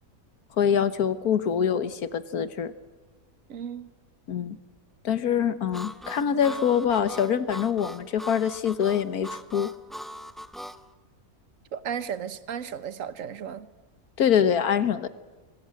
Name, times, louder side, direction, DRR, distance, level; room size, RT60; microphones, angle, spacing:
voice 1, 0.6-2.7 4.3-4.6 5.0-9.7 14.2-15.1, left 8 dB, 80° left, 12 dB, 1.7 m, -24 dB
voice 2, 3.5-3.9 11.7-13.7, right 8 dB, 60° right, 14 dB, 1.4 m, -34 dB
Harmonica, 5.7-10.8, equal, ahead, 0.7 m, -40 dB
26.0 x 20.0 x 7.7 m, 1.3 s
omnidirectional pair, 1.6 m